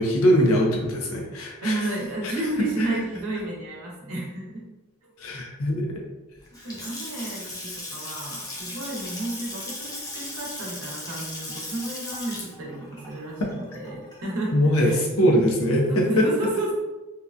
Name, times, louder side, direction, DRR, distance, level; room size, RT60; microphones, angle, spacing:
voice 1, 0.0-1.8 5.2-5.9 14.5-16.3, equal, 75° left, 0 dB, 0.6 m, -21 dB
voice 2, 1.6-4.6 6.6-16.7, right 2 dB, 80° right, -3 dB, 0.8 m, -32 dB
Water tap faucet / Sink (filling or washing) / Splash splatter, 6.4-14.5, left 1 dB, 15° left, 0.4 m, -37 dB
2.8 x 2.2 x 2.4 m, 1.1 s
head